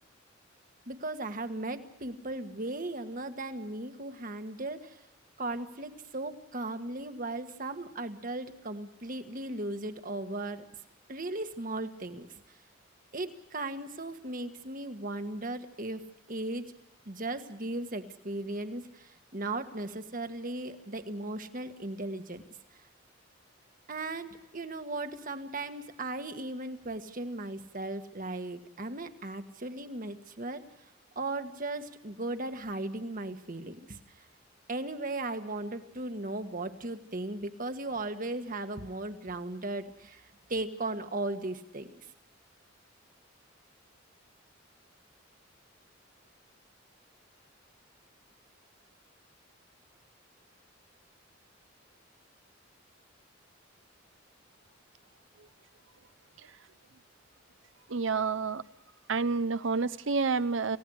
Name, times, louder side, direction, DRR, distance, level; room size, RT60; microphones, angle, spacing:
voice 1, 0.9-5.0 5.4-10.6 11.1-12.3 13.1-16.0 16.3-16.6 17.0-22.4 23.9-30.6 31.1-34.0 34.7-42.0, right 2 dB, 45° right, 8 dB, 1.6 m, -37 dB
voice 2, 57.9-58.6 59.1-60.8, right 4 dB, 65° right, 15 dB, 0.8 m, -29 dB
28.5 x 17.0 x 6.4 m, 0.93 s
head